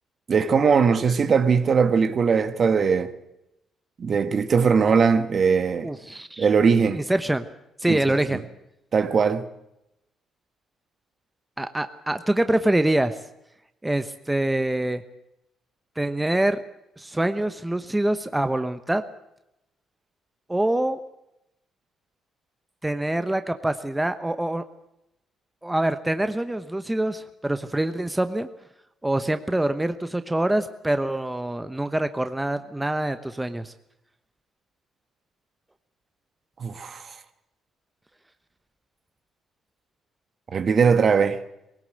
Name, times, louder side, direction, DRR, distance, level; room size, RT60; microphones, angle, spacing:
voice 1, 0.3-3.1 4.0-5.9 6.4-7.0 7.9-8.0 8.3-8.4 8.9-9.4 36.6-37.1 40.5-41.4, right 6 dB, 50° right, 1.6 m, -20 dB
voice 2, 5.8-6.5 6.9-7.4 7.8-8.4 11.6-13.2 13.8-15.0 16.0-16.6 17.0-19.0 20.5-21.0 22.8-24.6 25.6-28.5 29.0-33.7, right 1 dB, 10° right, 1.1 m, -25 dB
19.5 x 18.0 x 7.9 m
cardioid pair, 90°, 0 cm